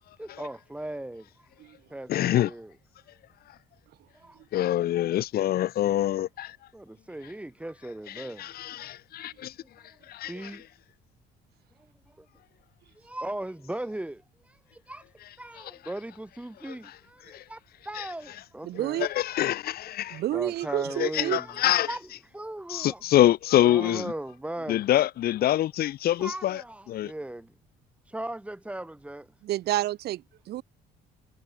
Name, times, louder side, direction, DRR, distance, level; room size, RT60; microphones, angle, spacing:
voice 1, 0.2-1.5 1.9-2.7 4.1-4.4 6.7-8.5 9.6-10.0 10.3-10.6 11.8-12.3 13.0-15.1 15.4-19.0 20.3-23.0 23.6-24.8 26.2-27.5 28.0-29.3, right 1 dB, 5° right, 7.8 m, -38 dB
voice 2, 2.1-2.5 4.5-6.6 8.2-9.5 10.1-10.5 16.7-16.8 17.3-17.4 18.0-18.1 19.0-20.2 21.0-21.9 22.7-24.1 24.7-26.6 26.9-27.1, left 13 dB, 65° left, 2.3 m, -25 dB
voice 3, 18.6-19.1 20.1-21.4 29.4-30.6, right 14 dB, 70° right, 2.2 m, -29 dB
cardioid pair, 110°, 17 cm